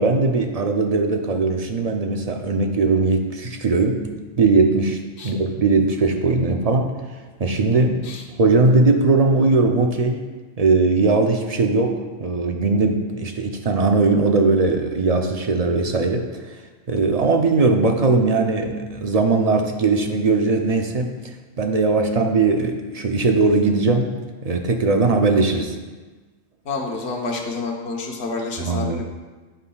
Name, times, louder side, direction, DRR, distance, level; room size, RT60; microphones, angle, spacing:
voice 1, 0.0-4.0 4.4-5.0 5.2-7.0 7.4-8.0 8.4-10.2 10.6-16.6 16.9-21.1 21.6-24.1 24.4-25.8 28.6-29.0, right 3 dB, 50° right, 4 dB, 0.4 m, -19 dB
voice 2, 26.6-29.0, left 3 dB, 60° left, 0 dB, 1.3 m, -28 dB
9.6 x 8.5 x 2.3 m, 1.3 s
omnidirectional pair, 1.3 m